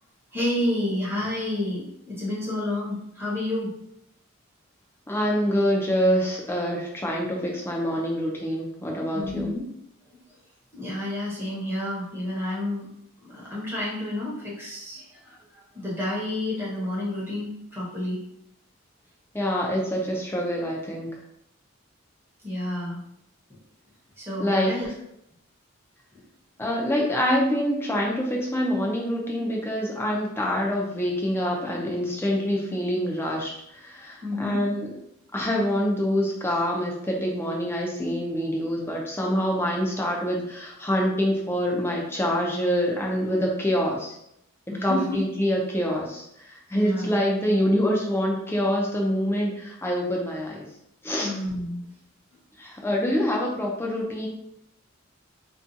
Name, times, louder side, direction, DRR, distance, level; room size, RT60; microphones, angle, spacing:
voice 1, 0.3-3.7 9.1-9.6 10.7-12.9 13.2-18.2 22.4-23.0 23.5-23.6 24.2-24.9 26.1-26.3 34.2-34.6 44.7-45.2 46.7-47.2 51.2-51.9, left 1 dB, 10° right, -7 dB, 0.8 m, -30 dB
voice 2, 5.1-9.5 19.3-21.1 24.4-24.7 26.6-34.9 35.3-44.1 44.8-50.7 51.0-51.3 52.6-54.3, equal, 10° left, -1 dB, 0.4 m, -26 dB
2.5 x 2.3 x 2.6 m, 0.78 s
head